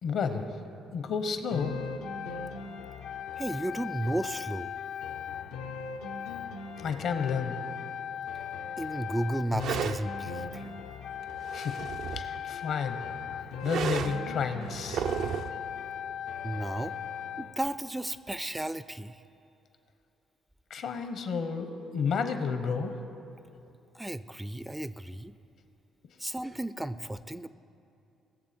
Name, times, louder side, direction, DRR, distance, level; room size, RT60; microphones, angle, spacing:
voice 1, 0.0-0.5 0.9-1.7 6.8-7.6 11.5-13.0 13.6-15.1 20.7-23.0, left 5 dB, 70° left, 8 dB, 1.0 m, -31 dB
sound 1, 1.5-17.5, left 7 dB, 90° left, 0.7 m, -38 dB
voice 2, 3.4-4.7 8.8-10.7 16.4-16.9 17.4-19.1 23.9-25.3 26.2-27.5, right 1 dB, 10° right, 14 dB, 0.3 m, -34 dB
sound 2, 9.6-10.0 11.2-12.4 13.6-14.2 14.7-15.6, right 7 dB, 70° right, 0.4 m, -33 dB
19.5 x 7.1 x 4.4 m, 2.7 s
supercardioid pair, 70°, 0 cm